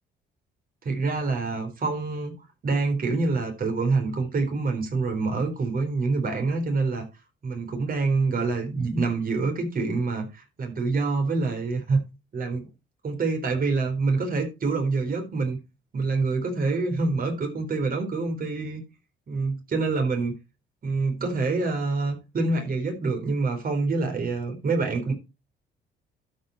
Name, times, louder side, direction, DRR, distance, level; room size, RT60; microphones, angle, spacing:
voice 1, 0.8-2.3 2.6-7.1 7.4-12.0 12.3-12.7 13.0-15.6 15.9-18.8 19.3-20.3 20.8-25.1, right 3 dB, 45° right, 4.0 m, -26 dB
12.5 x 5.6 x 4.4 m
cardioid pair, 90°, 20 cm